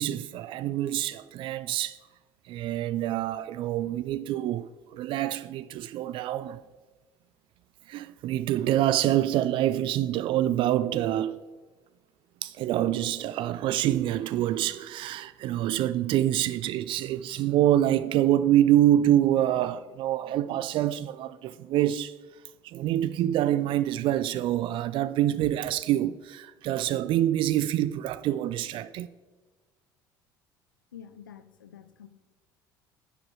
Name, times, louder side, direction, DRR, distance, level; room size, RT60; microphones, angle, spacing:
voice 1, 0.0-2.0 2.5-6.6 7.9-11.4 12.4-22.1 22.6-29.1, right 12 dB, 55° right, 0.3 m, -26 dB
voice 2, 30.9-32.1, left 9 dB, 90° left, 0.5 m, -47 dB
10.5 x 5.1 x 4.6 m
hypercardioid pair, 60°, 10 cm